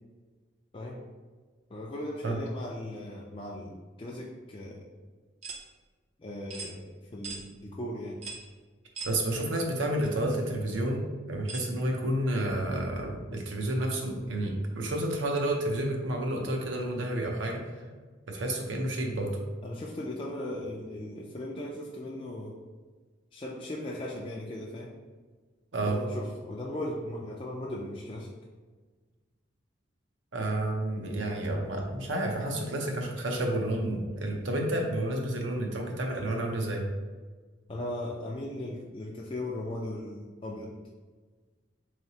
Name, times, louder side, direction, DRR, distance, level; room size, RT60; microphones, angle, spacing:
voice 1, 1.7-4.8 6.2-8.2 19.6-22.5 23.3-24.9 25.8-28.3 37.7-40.7, left 1 dB, 25° left, -3 dB, 0.3 m, -38 dB
sound 1, 5.4-5.6 6.5-6.7 7.2-7.4 8.2-8.5 8.9-9.2 10.0-10.1 11.5-11.7, right 4 dB, 35° right, 0.4 m, -39 dB
voice 2, 9.0-17.6 18.3-19.4 25.7-26.0 30.3-36.8, right 1 dB, 80° right, 1 dB, 0.7 m, -30 dB
3.9 x 3.3 x 2.8 m, 1.4 s
head